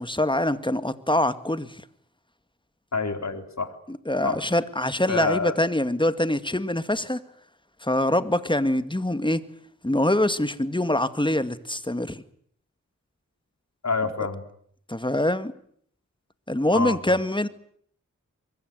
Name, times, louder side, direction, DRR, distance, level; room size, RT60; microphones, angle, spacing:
voice 1, 0.0-1.8 3.9-7.2 7.8-9.5 9.8-12.2 14.9-15.5 16.5-17.5, left 1 dB, 15° left, 2.1 m, -24 dB
voice 2, 2.9-3.7 4.2-4.4 5.1-5.5 13.8-14.4 16.7-17.0, left 4 dB, 60° left, 4.1 m, -27 dB
24.0 x 21.5 x 9.7 m
cardioid pair, 50°, 31 cm